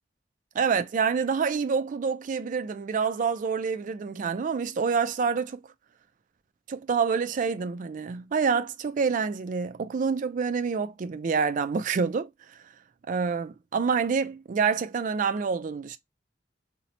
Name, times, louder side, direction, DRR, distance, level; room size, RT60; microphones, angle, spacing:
voice 1, 0.5-5.6 6.7-12.3 13.1-16.0, right 5 dB, 45° right, 0.3 m, -27 dB
2.8 x 2.0 x 3.8 m
head